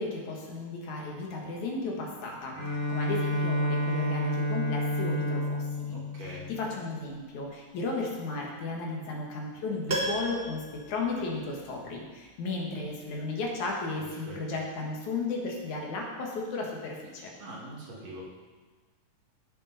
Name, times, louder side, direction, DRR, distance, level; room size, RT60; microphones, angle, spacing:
voice 1, 0.0-17.3, left 3 dB, 65° left, -1 dB, 2.9 m, -34 dB
Bowed string instrument, 2.5-7.3, equal, 75° right, 3.9 m, -30 dB
voice 2, 5.9-6.4 14.3-14.4 17.4-18.2, right 1 dB, 55° right, -5 dB, 3.2 m, -43 dB
Piano, 9.9-12.0 12.3-12.4, right 1 dB, 90° right, 0.5 m, -35 dB
16.0 x 6.9 x 4.1 m, 1.3 s
omnidirectional pair, 3.7 m